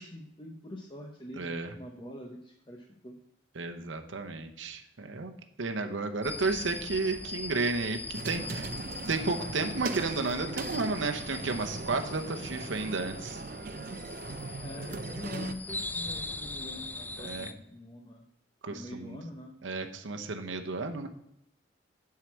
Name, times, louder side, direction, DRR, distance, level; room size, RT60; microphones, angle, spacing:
voice 1, 0.0-3.2 14.6-18.2 18.7-19.5, left 1 dB, 25° left, 0 dB, 0.8 m, -44 dB
voice 2, 1.3-1.7 3.5-5.3 5.6-8.7 9.1-13.4 17.2-17.5 18.6-19.2 19.6-21.1, right 3 dB, 80° right, 5 dB, 0.8 m, -32 dB
sound 1, 6.2-17.5, left 3 dB, 10° left, 0.3 m, -41 dB
sound 2, 8.1-15.5, right 4 dB, 45° right, 0.5 m, -39 dB
7.7 x 4.8 x 7.3 m, 0.75 s
head